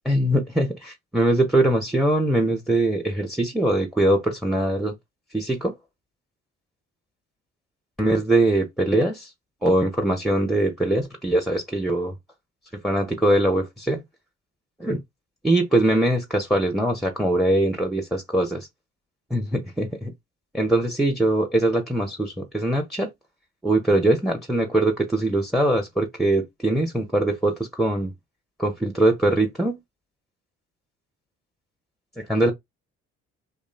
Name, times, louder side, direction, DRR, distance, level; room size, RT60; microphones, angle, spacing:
voice 1, 0.0-4.9 5.3-5.7 8.0-9.3 9.6-12.1 12.8-14.0 14.8-15.0 15.4-18.7 19.3-20.1 20.5-23.1 23.6-28.1 28.6-29.8 32.2-32.5, right 1 dB, ahead, 0.5 m, -22 dB
2.6 x 2.1 x 2.4 m
hypercardioid pair, 50°, 35 cm